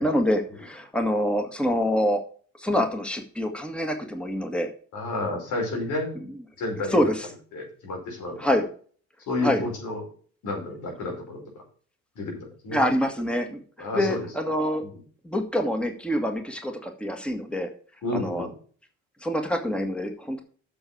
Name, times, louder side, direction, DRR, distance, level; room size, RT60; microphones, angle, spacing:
voice 1, 0.0-2.2 2.6-4.7 6.9-7.3 8.4-8.7 9.4-9.7 12.7-14.8 15.2-17.7 18.1-18.5 19.2-20.4, equal, 5° left, 5 dB, 1.8 m, -26 dB
voice 2, 4.9-6.2 6.6-7.1 7.5-8.6 9.3-10.0 10.4-11.6 12.1-12.8 13.8-14.3 14.8-15.0 18.0-18.5, left 2 dB, 85° left, 1 dB, 5.0 m, -31 dB
7.9 x 6.3 x 6.3 m, 0.43 s
cardioid pair, 90°, 30 cm